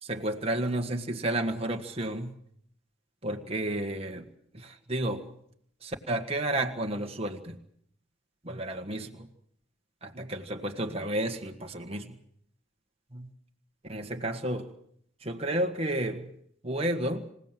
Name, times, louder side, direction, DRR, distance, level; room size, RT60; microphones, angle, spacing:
voice 1, 0.0-2.3 3.2-4.3 4.5-5.3 5.8-7.6 8.4-9.3 10.0-12.2 13.1-13.3 13.9-14.7 15.2-16.3 16.6-17.3, right 1 dB, 30° right, 4 dB, 1.7 m, -31 dB
26.5 x 17.0 x 7.6 m, 0.70 s
head